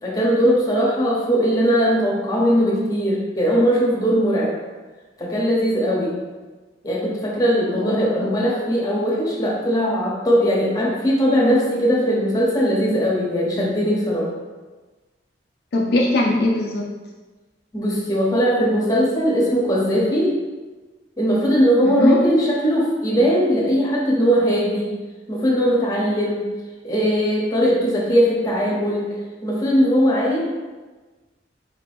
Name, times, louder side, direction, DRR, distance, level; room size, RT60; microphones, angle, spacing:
voice 1, 0.0-4.6 5.2-6.2 6.8-14.3 17.7-20.3 21.2-24.9 25.3-26.4 26.8-29.1 29.4-30.4, equal, 20° left, -4 dB, 1.0 m, -19 dB
voice 2, 7.7-8.3 15.7-16.9 21.8-22.2, left 2 dB, 65° left, -1 dB, 0.5 m, -21 dB
4.8 x 2.9 x 3.4 m, 1.3 s
head